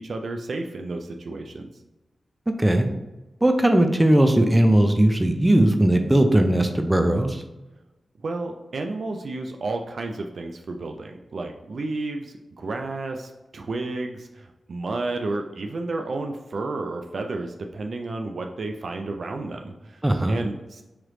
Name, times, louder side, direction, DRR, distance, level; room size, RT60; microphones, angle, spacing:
voice 1, 0.0-1.7 8.2-20.0 20.3-20.8, right 2 dB, 70° right, 4 dB, 0.3 m, -31 dB
voice 2, 2.5-2.9 3.4-7.4 20.0-20.4, right 1 dB, 20° right, 6 dB, 0.6 m, -18 dB
3.1 x 3.0 x 3.8 m, 1.0 s
cardioid pair, 40°, 0 cm